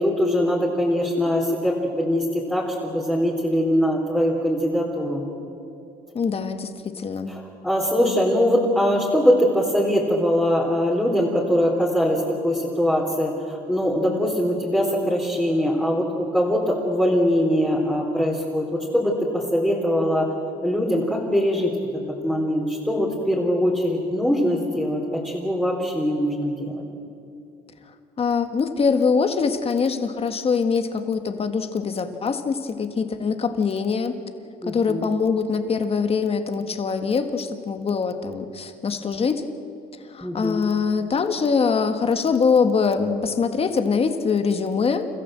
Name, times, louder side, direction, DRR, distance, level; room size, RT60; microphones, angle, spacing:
voice 1, 0.0-5.2 7.3-20.3 20.6-26.8 34.6-35.1 40.2-40.7, equal, 5° left, -5 dB, 3.6 m, -22 dB
voice 2, 6.1-7.3 28.2-34.2 34.6-39.4 40.1-45.1, left 5 dB, 35° left, 8 dB, 1.8 m, -23 dB
29.5 x 14.5 x 7.7 m, 2.7 s
cardioid pair, 110°, 17 cm